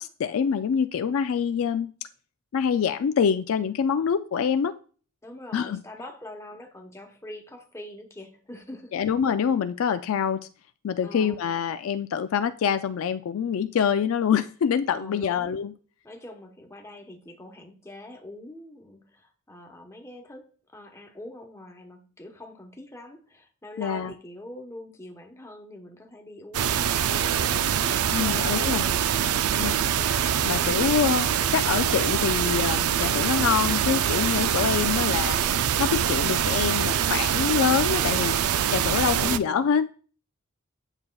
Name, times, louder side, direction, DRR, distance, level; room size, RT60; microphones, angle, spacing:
voice 1, 0.0-1.9 2.5-4.8 5.5-5.8 8.9-10.5 10.8-15.7 23.8-24.1 28.1-28.9 29.6-29.9 30.4-35.4 35.8-38.4 38.7-39.9, left 7 dB, 65° left, 0.3 m, -25 dB
voice 2, 5.2-8.9 11.0-11.4 14.9-15.6 16.0-29.6 39.1-39.7, left 1 dB, 15° left, 1.0 m, -44 dB
sound 1, 26.5-39.4, right 9 dB, 85° right, 0.4 m, -24 dB
9.7 x 6.8 x 2.3 m
head